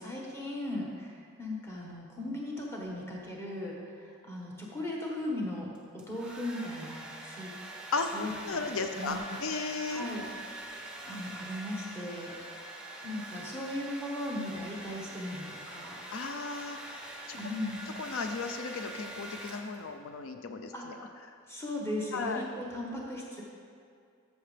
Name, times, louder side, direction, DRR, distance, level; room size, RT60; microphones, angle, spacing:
voice 1, 0.0-7.5 8.1-9.4 9.9-10.3 10.5-12.3 13.0-16.0 17.3-17.8 20.7-20.8 21.5-23.4, left 1 dB, 10° left, -4 dB, 1.3 m, -38 dB
Domestic sounds home sounds, 5.7-20.0, right 1 dB, 5° right, 0.7 m, -44 dB
voice 2, 7.9-10.1 16.1-17.4 18.0-21.1 22.1-22.4, left 4 dB, 75° left, 6 dB, 0.5 m, -35 dB
13.5 x 6.5 x 3.3 m, 2.3 s
head